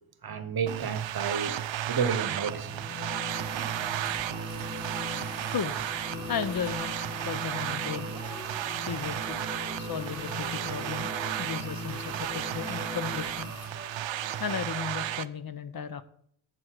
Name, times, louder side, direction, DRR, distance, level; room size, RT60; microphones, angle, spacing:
voice 1, 0.2-1.6 1.9-2.7 3.5-3.7, right 6 dB, 50° right, 1.1 m, -31 dB
sound 1, 0.7-15.3, right 12 dB, 70° right, 0.6 m, -34 dB
sound 2, 2.5-15.2, left 3 dB, 5° right, 4.4 m, -41 dB
sound 3, 3.3-13.7, left 1 dB, 30° left, 2.6 m, -46 dB
voice 2, 6.3-7.0 7.2-8.1 8.9-9.4 9.8-11.1 11.4-13.5 14.4-16.0, left 7 dB, 45° left, 0.7 m, -35 dB
7.8 x 7.7 x 6.0 m
cardioid pair, 80°, 48 cm